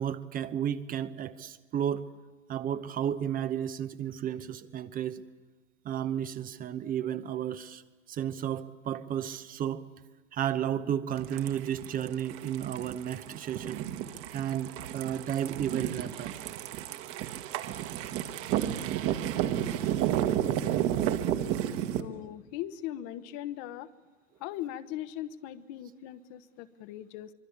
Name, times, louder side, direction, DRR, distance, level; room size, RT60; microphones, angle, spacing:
voice 1, 0.0-2.1 2.5-5.2 5.8-9.8 10.3-13.8 14.3-16.3, right 10 dB, 20° right, 12 dB, 0.9 m, -33 dB
sound 1, 11.2-22.0, right 11 dB, 35° right, 1.7 m, -32 dB
voice 2, 22.0-23.9 24.4-27.3, left 12 dB, 40° left, 11 dB, 1.3 m, -39 dB
24.5 x 24.5 x 8.6 m, 1.3 s
figure-of-eight pair, 95°, 39 cm